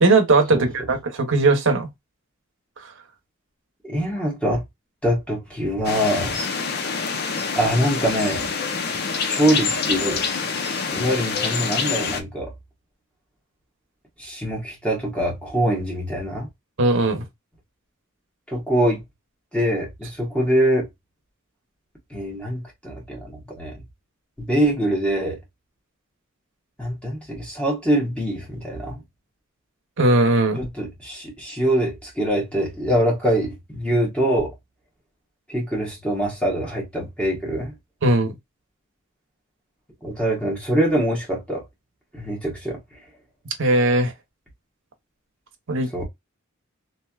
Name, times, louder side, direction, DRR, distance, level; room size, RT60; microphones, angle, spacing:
voice 1, 0.0-1.9 16.8-17.2 30.0-30.6 38.0-38.3 43.6-44.1 45.7-45.9, right 2 dB, 60° right, 0.9 m, -18 dB
voice 2, 3.8-4.6 5.0-6.4 7.5-8.5 8.8-10.2 10.9-12.5 14.2-16.5 18.5-19.0 19.5-20.9 22.1-23.8 24.4-25.4 26.8-29.0 30.5-34.5 35.5-37.7 40.0-41.6 42.1-43.0 45.9-46.0, right 1 dB, 5° left, 1.4 m, -24 dB
sound 1, 5.8-12.2, left 5 dB, 50° left, 0.6 m, -26 dB
3.3 x 2.8 x 2.3 m
head